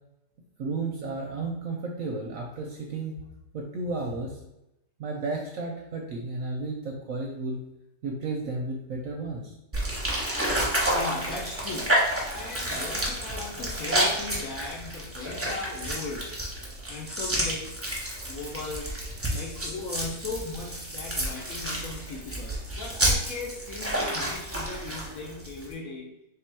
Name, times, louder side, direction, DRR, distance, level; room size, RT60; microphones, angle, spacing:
voice 1, 0.6-3.2 3.5-4.4 5.0-7.6 8.0-9.5, right 3 dB, 65° right, 0 dB, 0.8 m, -33 dB
sound 1, 9.7-25.7, right 1 dB, 15° right, 0.6 m, -30 dB
voice 2, 10.8-16.3 16.9-17.8 18.3-18.9 19.3-26.1, left 3 dB, 70° left, -1 dB, 0.8 m, -38 dB
3.4 x 2.9 x 4.5 m, 0.89 s
omnidirectional pair, 1.9 m